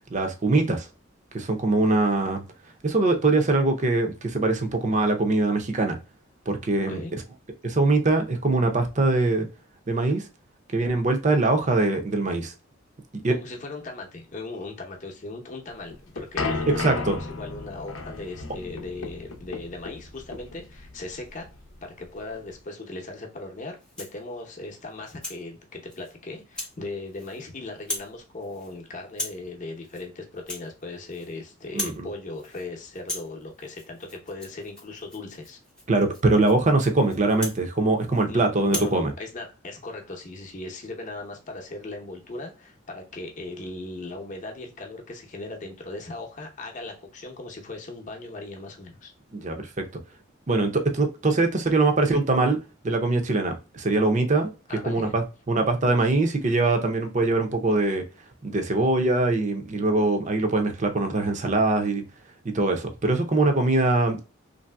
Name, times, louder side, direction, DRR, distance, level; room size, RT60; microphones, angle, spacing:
voice 1, 0.1-0.9 1.3-2.4 2.8-6.0 6.5-7.0 7.6-9.5 9.9-10.2 10.7-12.5 13.2-13.3 16.8-17.2 31.7-32.1 35.9-39.1 49.3-49.9 50.5-52.6 52.8-54.5 54.9-58.0 58.4-62.0 62.4-64.2, right 2 dB, 35° right, 0.6 m, -22 dB
voice 2, 13.3-21.5 21.8-35.6 38.3-49.1 54.7-55.2, left 2 dB, 40° left, 0.7 m, -38 dB
sound 1, 15.7-22.6, left 3 dB, 85° left, 0.6 m, -34 dB
Rattle (instrument), 23.8-24.2 24.7-25.4 25.9-26.1 26.5-26.8 27.1-27.5 27.7-28.1 28.4-28.7 29.1-29.5 29.8-30.1 30.3-31.4 31.6-32.0 32.3-32.7 32.9-38.3 38.6-39.0, left 1 dB, 5° left, 0.7 m, -38 dB
3.3 x 2.6 x 2.2 m
head